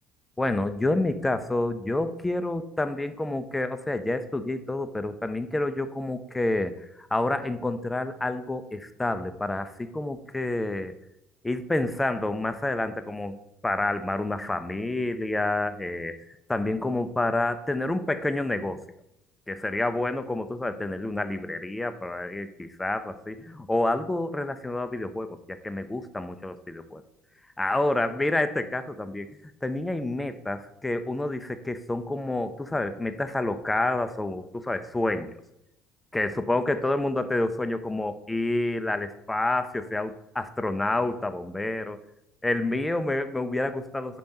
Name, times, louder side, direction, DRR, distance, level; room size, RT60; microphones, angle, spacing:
voice 1, 0.4-10.9 11.4-13.4 13.6-16.2 16.5-18.8 19.5-27.0 27.6-29.3 29.6-35.3 36.1-42.0 42.4-44.2, left 2 dB, 15° left, 10 dB, 0.6 m, -28 dB
5.2 x 5.1 x 5.8 m, 0.83 s
figure-of-eight pair, 55°, 0 cm